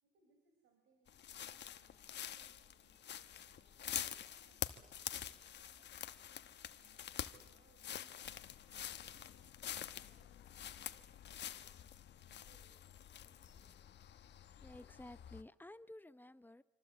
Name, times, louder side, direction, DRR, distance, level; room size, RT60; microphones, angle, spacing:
voice 1, 0.0-6.2 6.7-8.4 8.6-13.9, right 3 dB, 80° right, 3 dB, 5.5 m, -74 dB
sound 1, 1.1-15.4, left 10 dB, 60° left, 1.2 m, -47 dB
sound 2, 8.2-14.2, left 11 dB, 80° left, 1.4 m, -62 dB
voice 2, 14.6-16.6, left 1 dB, 10° left, 14 dB, 0.9 m, -54 dB
26.5 x 25.5 x 8.2 m, 1.1 s
cardioid pair, 90°, 20 cm